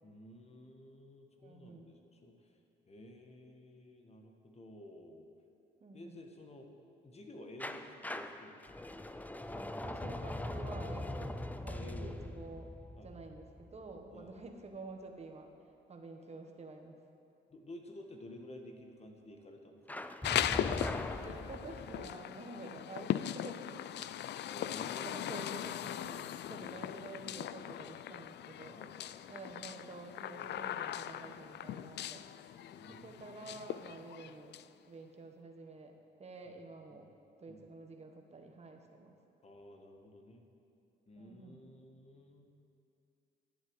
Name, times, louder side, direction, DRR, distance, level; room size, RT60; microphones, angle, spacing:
voice 1, 0.0-2.5 2.9-5.3 5.9-6.7 7.0-8.7 11.7-12.2 13.0-13.1 14.1-14.5 17.5-20.0 24.4-25.4 26.5-26.7 28.7-29.2 32.6-33.3 36.5-36.6 36.9-37.1 37.5-37.7 39.4-40.4 41.1-42.5, left 1 dB, 30° left, 3 dB, 1.6 m, -52 dB
voice 2, 1.4-1.9 5.8-6.2 9.5-12.7 13.0-15.5 15.9-17.0 21.2-24.1 25.0-28.8 29.3-32.3 32.9-34.5 34.9-35.9 36.2-37.1 37.4-39.1 41.2-41.6, right 3 dB, 30° right, 3 dB, 1.5 m, -49 dB
sound 1, 7.6-14.4 19.9-22.1, left 1 dB, 10° left, 0.6 m, -41 dB
sound 2, 20.2-34.6, left 11 dB, 60° left, 0.4 m, -39 dB
10.5 x 7.9 x 8.1 m, 2.6 s
cardioid pair, 90°, 20 cm